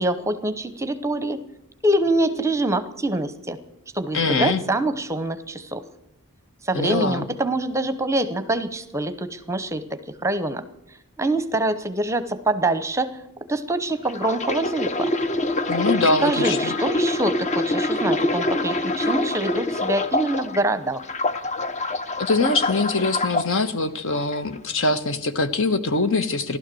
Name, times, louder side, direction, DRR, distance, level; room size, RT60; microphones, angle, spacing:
voice 1, 0.0-1.4 1.8-3.6 3.9-5.8 6.6-10.6 11.2-13.1 13.5-15.1 16.2-21.0, right 1 dB, 15° right, 12 dB, 0.8 m, -25 dB
voice 2, 4.1-4.6 6.7-7.3 15.7-16.7 22.2-26.6, left 3 dB, 60° left, 11 dB, 1.2 m, -23 dB
sound 1, 14.1-20.6 21.0-23.5 24.1-24.4, left 2 dB, 30° left, 0.7 m, -25 dB
15.5 x 12.0 x 7.7 m, 0.86 s
head